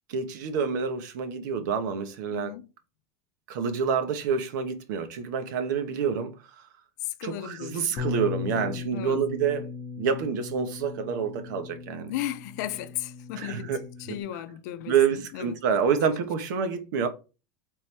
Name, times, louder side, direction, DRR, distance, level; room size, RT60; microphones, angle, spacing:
voice 1, 0.1-2.5 3.5-6.3 7.2-9.7 10.0-12.1 13.3-13.8 14.1-14.2 14.9-17.1, right 6 dB, 80° right, 1.0 m, -27 dB
voice 2, 2.3-2.7 7.0-8.0 8.4-9.2 12.1-15.5, left 12 dB, 65° left, 0.6 m, -36 dB
Bass guitar, 8.0-14.2, left 7 dB, 40° left, 0.9 m, -38 dB
3.7 x 3.2 x 4.4 m
supercardioid pair, 165°, 10 cm